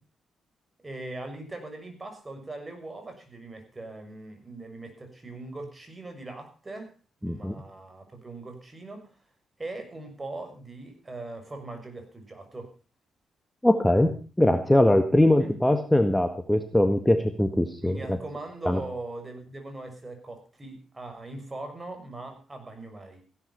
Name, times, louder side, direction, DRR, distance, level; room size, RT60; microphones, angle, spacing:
voice 1, 0.8-6.9 7.2-9.1 9.6-12.7 15.4-15.6 17.8-23.2, right 2 dB, 25° right, 5 dB, 6.5 m, -40 dB
voice 2, 7.2-7.6 13.6-18.2 18.7-18.8, left 1 dB, 10° left, 7 dB, 1.6 m, -22 dB
16.0 x 11.5 x 5.7 m, 0.36 s
cardioid pair, 70°, 0 cm